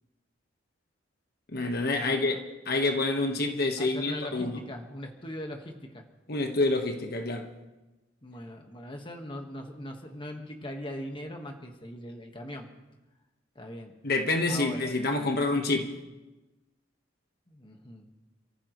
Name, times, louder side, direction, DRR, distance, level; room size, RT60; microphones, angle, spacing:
voice 1, 1.5-4.6 6.3-7.5 14.0-16.0, left 2 dB, 55° left, 1.5 m, -28 dB
voice 2, 2.0-2.4 3.8-6.0 8.2-12.7 13.5-13.9 14.5-14.9 17.5-18.0, left 1 dB, 25° left, 1.6 m, -40 dB
29.0 x 14.5 x 3.2 m
head